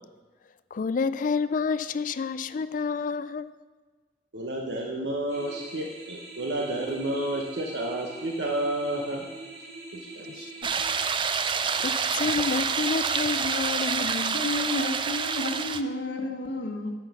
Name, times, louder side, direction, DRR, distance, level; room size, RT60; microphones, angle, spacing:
voice 1, 0.7-3.5 10.3-10.5 11.5-14.5, left 5 dB, 50° left, 0.4 m, -29 dB
voice 2, 4.3-9.3 9.9-10.5, right 1 dB, 90° right, 1.0 m, -31 dB
sound 1, 5.3-10.8, right 2 dB, 70° right, 2.5 m, -43 dB
sound 2, 10.6-15.8, right 6 dB, 30° right, 0.4 m, -27 dB
voice 3, 14.3-16.9, left 2 dB, 85° left, 1.4 m, -31 dB
8.1 x 5.6 x 7.0 m
head